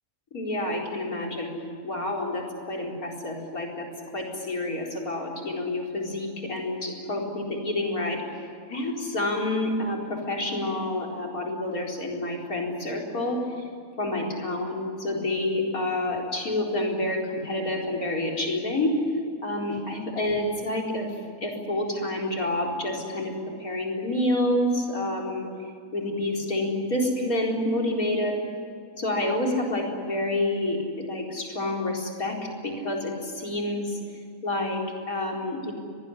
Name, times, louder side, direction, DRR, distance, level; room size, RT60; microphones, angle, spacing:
voice 1, 0.3-1.5 1.8-3.9 4.1-8.2 8.7-13.4 14.0-18.9 19.4-21.1 21.4-23.3 23.6-25.5 25.9-28.3 29.0-32.4 32.6-34.0 34.4-35.7, left 1 dB, 85° left, 0 dB, 4.8 m, -28 dB
24.5 x 19.5 x 9.9 m, 2.3 s
omnidirectional pair, 1.5 m